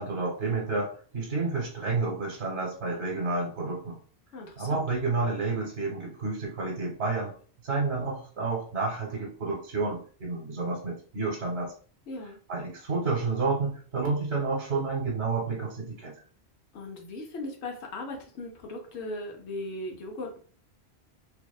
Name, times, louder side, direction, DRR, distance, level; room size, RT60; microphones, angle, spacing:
voice 1, 0.0-4.0 4.6-7.3 7.6-11.7 12.5-16.1, right 3 dB, 70° right, -3 dB, 1.0 m, -30 dB
voice 2, 4.3-4.9 12.1-12.4 16.7-20.4, left 2 dB, 80° left, 1 dB, 0.9 m, -38 dB
2.6 x 2.1 x 2.2 m, 0.43 s
omnidirectional pair, 1.1 m